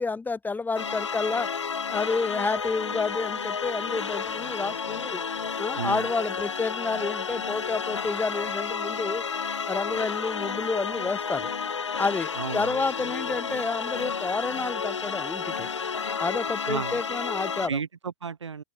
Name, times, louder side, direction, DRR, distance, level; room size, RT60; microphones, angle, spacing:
voice 1, 0.0-1.5 1.9-5.2 5.6-9.2 9.6-11.5 12.0-15.7 16.2-17.8, left 4 dB, 10° left, 5.0 m, -30 dB
sound 1, 0.8-17.7, left 6 dB, 90° left, 1.0 m, -31 dB
voice 2, 5.8-6.1 12.4-12.8 16.7-17.0 17.7-18.6, right 6 dB, 85° right, 2.3 m, -33 dB
open air
hypercardioid pair, 100°, 15 cm